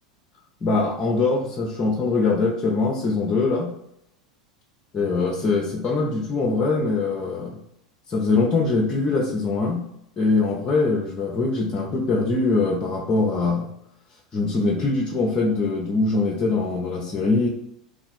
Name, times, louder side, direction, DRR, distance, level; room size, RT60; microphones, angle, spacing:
voice 1, 0.6-3.7 4.9-7.6 8.1-9.8 10.2-13.7 14.3-17.5, left 3 dB, 30° left, -2 dB, 0.7 m, -22 dB
3.4 x 2.5 x 4.2 m, 0.76 s
figure-of-eight pair, 85°, 4 cm